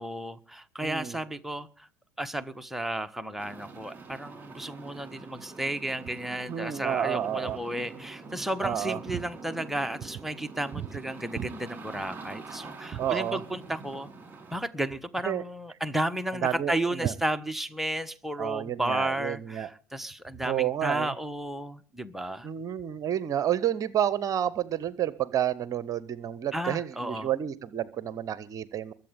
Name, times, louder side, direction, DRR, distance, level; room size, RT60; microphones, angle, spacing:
voice 1, 0.0-1.9 2.2-14.1 14.5-22.5 26.5-27.3, right 1 dB, 5° right, 1.3 m, -33 dB
voice 2, 0.8-1.2 6.5-7.6 8.6-9.0 12.9-13.4 15.2-15.4 16.4-16.7 17.0-17.1 18.4-19.7 20.4-21.1 22.4-28.9, right 10 dB, 40° right, 0.9 m, -30 dB
sound 1, 3.4-14.6, right 4 dB, 20° right, 6.0 m, -45 dB
22.5 x 8.1 x 5.2 m
figure-of-eight pair, 70°, 9 cm